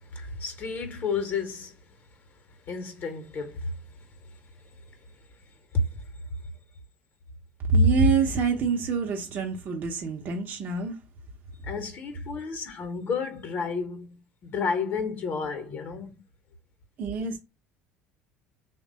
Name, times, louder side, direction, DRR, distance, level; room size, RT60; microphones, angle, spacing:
voice 1, 0.1-1.8 2.7-3.7 5.7-5.9 11.6-16.2, left 4 dB, 45° left, 0.8 m, -31 dB
voice 2, 7.7-11.0 17.0-17.4, right 3 dB, 40° right, 0.6 m, -25 dB
3.2 x 2.1 x 3.8 m
figure-of-eight pair, 65°, 5 cm